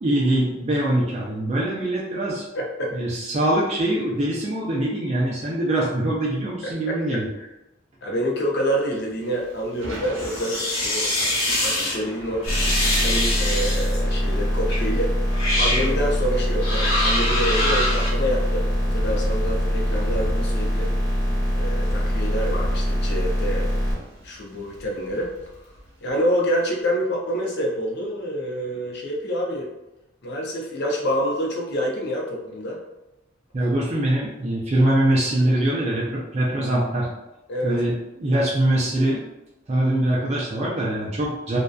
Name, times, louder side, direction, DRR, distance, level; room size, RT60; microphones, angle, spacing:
voice 1, 0.0-2.4 2.9-7.3 33.5-37.1 37.6-39.2 39.7-41.6, right 1 dB, 35° right, -5 dB, 0.4 m, -23 dB
voice 2, 2.5-2.9 6.6-7.0 7.4-7.5 8.0-12.4 12.9-15.1 15.5-21.0 21.5-23.7 24.2-25.3 26.0-29.7 30.2-32.8 35.4-35.5 37.5-37.7, equal, 55° left, -1 dB, 0.6 m, -27 dB
Thunder / Rain, 8.9-26.4, equal, 75° right, 0.7 m, -41 dB
sound 1, 10.2-12.0 12.4-14.0 14.7-14.8 15.3-15.9 16.6-18.1, left 1 dB, 85° left, 0.9 m, -24 dB
sound 2, 12.5-23.9, equal, 10° left, 0.9 m, -23 dB
2.5 x 2.2 x 2.3 m, 0.96 s
head